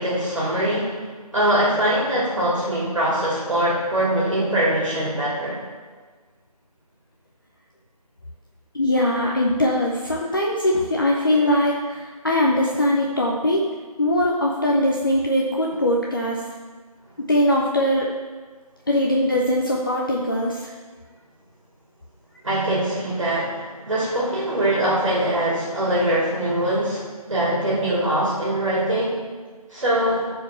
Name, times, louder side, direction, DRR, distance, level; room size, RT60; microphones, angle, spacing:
voice 1, 0.0-5.6 22.4-29.2 29.7-30.3, right 1 dB, 50° right, -6 dB, 2.7 m, -22 dB
voice 2, 8.7-13.7 14.0-16.4 17.3-18.1 18.9-20.7, left 1 dB, 35° left, -2 dB, 0.7 m, -21 dB
10.0 x 4.7 x 5.6 m, 1.5 s
figure-of-eight pair, 165°, 20 cm